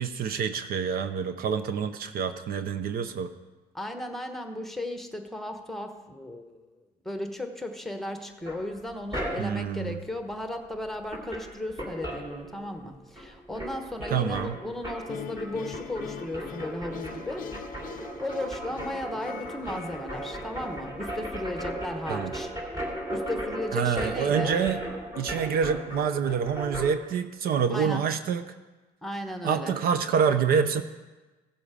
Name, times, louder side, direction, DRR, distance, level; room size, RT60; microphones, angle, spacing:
voice 1, 0.0-3.3 9.4-10.0 14.1-14.5 22.1-22.3 23.7-24.8 25.2-28.5 29.4-30.8, right 7 dB, 60° right, 10 dB, 0.7 m, -27 dB
voice 2, 3.7-6.7 7.0-17.5 18.2-22.5 23.1-24.6 27.7-28.0 29.0-29.8, left 1 dB, ahead, 5 dB, 1.1 m, -35 dB
sound 1, 8.5-9.7 10.7-10.8 11.1-12.9 13.2-26.9, right 1 dB, 20° right, 2.8 m, -36 dB
sound 2, 15.1-22.2, left 10 dB, 55° left, 0.5 m, -43 dB
16.0 x 7.0 x 5.0 m, 1.2 s
cardioid pair, 110°, 17 cm